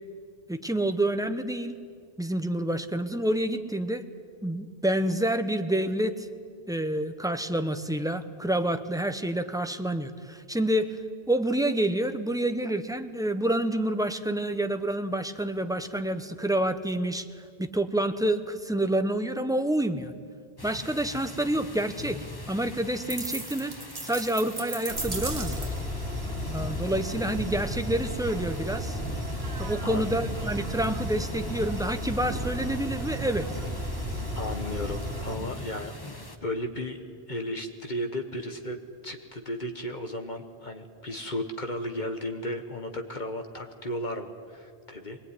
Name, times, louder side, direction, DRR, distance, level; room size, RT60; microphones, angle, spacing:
voice 1, 0.5-1.8 2.2-4.1 4.4-6.3 6.7-11.0 11.3-17.2 17.6-20.1 20.6-23.8 24.0-25.7 26.5-29.0 29.6-33.5, right 1 dB, 5° right, 8 dB, 0.9 m, -28 dB
sound 1, 20.6-36.4, left 2 dB, 20° left, 1.3 m, -43 dB
sound 2, 23.1-25.9, right 2 dB, 35° right, 1.9 m, -36 dB
sound 3, 24.9-35.4, equal, 70° right, 2.1 m, -33 dB
voice 2, 29.8-30.1 34.3-37.0 37.3-38.8 39.0-45.2, left 1 dB, 45° left, 5 dB, 1.5 m, -34 dB
23.5 x 19.5 x 9.8 m, 2.2 s
omnidirectional pair, 1.1 m